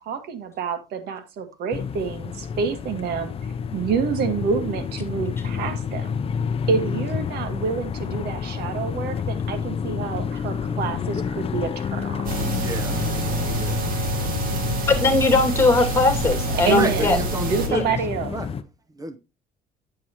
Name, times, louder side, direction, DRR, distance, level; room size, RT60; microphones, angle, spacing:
voice 1, 0.0-3.3 3.7-6.2 6.7-12.3 16.6-17.2 17.4-18.3, right 6 dB, 75° right, 1.6 m, -27 dB
sound 1, 1.7-18.6, left 7 dB, 35° left, 0.6 m, -29 dB
sound 2, 12.2-17.7, right 3 dB, 55° right, 2.1 m, -27 dB
voice 2, 12.6-13.0 13.5-13.8 16.7-16.9 17.2-17.8 18.3-18.5 19.0-19.2, right 2 dB, 20° right, 0.8 m, -31 dB
voice 3, 14.9-17.2 17.7-17.8, left 3 dB, 15° left, 2.2 m, -19 dB
9.6 x 7.6 x 2.9 m
cardioid pair, 110°, 17 cm